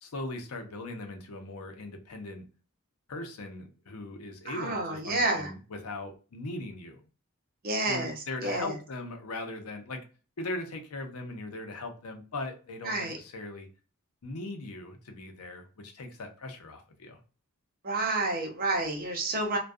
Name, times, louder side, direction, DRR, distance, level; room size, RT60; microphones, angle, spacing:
voice 1, 0.0-2.5 3.1-7.0 7.9-10.0 10.4-13.7 14.2-17.2, left 2 dB, 85° left, 5 dB, 0.6 m, -39 dB
voice 2, 4.5-5.5 7.6-8.1 8.4-8.7 12.8-13.2 17.8-19.6, right 2 dB, 40° right, 1 dB, 0.7 m, -29 dB
2.6 x 2.2 x 2.3 m, 0.36 s
head